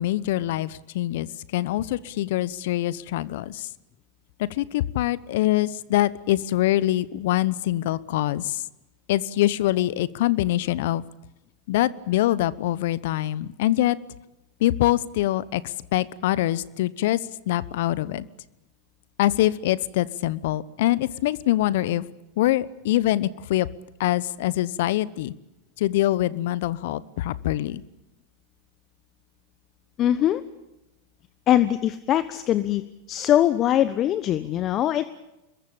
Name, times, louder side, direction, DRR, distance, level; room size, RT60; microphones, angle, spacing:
voice 1, 0.0-3.7 4.4-8.6 9.1-11.0 11.7-14.0 14.6-17.2 17.5-18.2 19.2-22.0 22.4-23.7 24.0-25.3 25.8-27.8, left 14 dB, 60° left, 20 dB, 0.9 m, -24 dB
voice 2, 30.0-30.4 31.5-32.8 33.1-35.0, left 11 dB, 40° left, 14 dB, 1.0 m, -22 dB
26.0 x 22.0 x 8.7 m, 0.94 s
hypercardioid pair, 90°, 0 cm